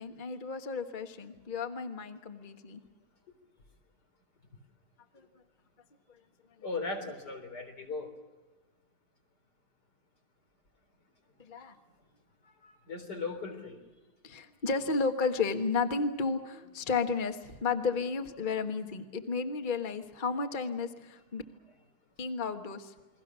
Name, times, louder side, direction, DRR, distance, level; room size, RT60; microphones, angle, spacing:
voice 1, 0.0-2.8 5.1-5.2 11.4-11.7 14.2-21.4 22.2-22.9, left 4 dB, 30° left, 6 dB, 1.4 m, -33 dB
voice 2, 6.6-8.1 12.6-13.8, left 3 dB, 85° left, 5 dB, 4.5 m, -38 dB
29.5 x 22.0 x 6.2 m, 1.2 s
omnidirectional pair, 1.7 m